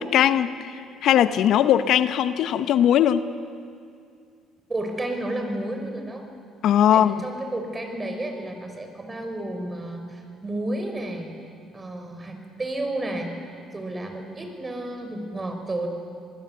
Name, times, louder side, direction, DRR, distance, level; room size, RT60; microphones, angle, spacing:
voice 1, 0.0-3.3 6.6-7.2, left 10 dB, 65° left, 13 dB, 0.8 m, -20 dB
voice 2, 4.7-6.3 6.9-11.4 11.7-13.3 13.7-15.9, right 1 dB, 25° right, 5 dB, 5.4 m, -31 dB
26.0 x 20.5 x 8.3 m, 2.3 s
supercardioid pair, 65°, 0 cm